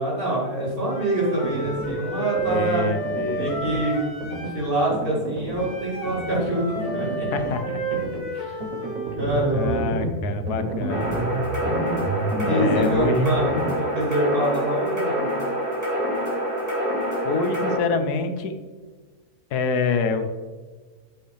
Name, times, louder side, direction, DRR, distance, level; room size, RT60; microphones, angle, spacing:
voice 1, 0.0-2.9 3.3-4.0 4.4-7.5 8.3-8.6 9.2-10.0 12.4-15.3, right 1 dB, 35° right, -5 dB, 2.8 m, -25 dB
Wind instrument woodwind instrument, 0.9-4.7 5.5-9.2, right 3 dB, 60° left, 2.3 m, -31 dB
sound 1, 1.4-2.0 2.4-2.7 3.0-3.9 4.2-4.6 4.9-5.7 6.1-6.4 6.8-7.6 7.9-8.3 8.6-13.7, right 2 dB, 65° right, 1.4 m, -30 dB
voice 2, 2.5-3.5 7.3-7.8 9.5-11.3 12.4-13.4 17.2-18.6 19.5-20.4, left 4 dB, 85° left, 8 dB, 1.3 m, -26 dB
sound 2, 10.9-17.8, equal, 10° right, 2.7 m, -26 dB
8.2 x 8.0 x 3.3 m, 1.4 s
omnidirectional pair, 1.6 m